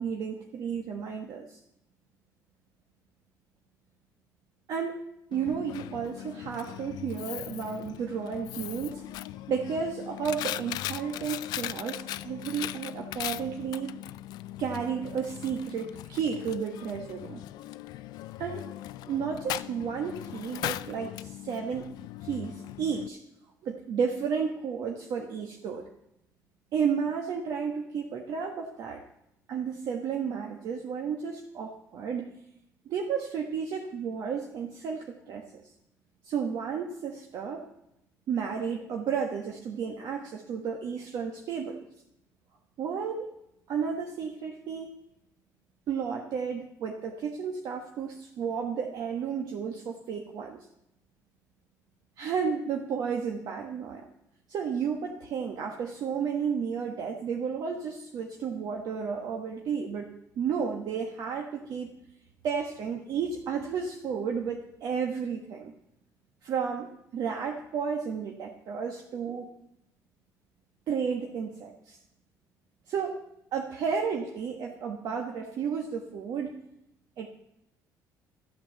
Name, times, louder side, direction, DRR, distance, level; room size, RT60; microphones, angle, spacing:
voice 1, 0.0-1.6 4.7-5.0 5.3-9.0 9.5-14.0 14.6-17.4 18.4-18.7 19.1-22.0 22.2-23.2 23.6-25.9 26.7-29.0 29.5-32.4 32.8-35.7 36.2-37.7 38.3-41.8 42.8-43.3 43.7-44.9 45.9-50.7 52.2-54.1 54.5-60.1 60.4-62.0 62.4-65.7 66.4-69.5 70.9-72.0 72.9-73.2 73.5-76.7 77.2-77.3, right 6 dB, 60° right, 2 dB, 1.3 m, -32 dB
Coin (dropping), 5.3-23.1, left 14 dB, 75° left, 0.4 m, -39 dB
13.0 x 8.7 x 7.7 m, 0.84 s
cardioid pair, 140°, 7 cm